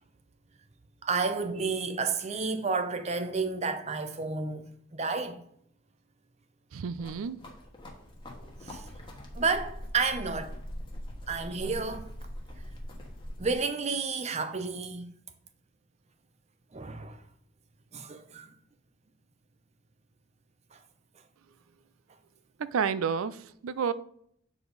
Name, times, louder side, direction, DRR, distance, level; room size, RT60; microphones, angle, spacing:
voice 1, 1.0-5.4 8.6-8.8 9.3-10.6 11.3-12.1 13.4-15.1 16.7-17.2 17.9-18.5 20.7-20.8, right 4 dB, 30° right, 0.6 m, -31 dB
voice 2, 6.7-7.4 22.6-23.9, right 6 dB, 80° right, 0.4 m, -30 dB
sound 1, 7.0-13.6, equal, 25° left, 1.2 m, -42 dB
7.9 x 4.9 x 3.9 m
head